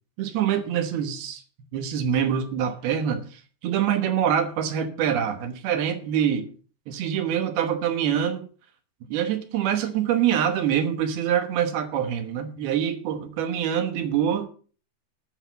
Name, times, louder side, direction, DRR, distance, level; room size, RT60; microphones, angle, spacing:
voice 1, 0.2-1.4 1.7-6.5 6.9-8.5 9.1-14.5, right 9 dB, 70° right, 2.9 m, -25 dB
10.5 x 6.8 x 8.1 m
omnidirectional pair, 4.8 m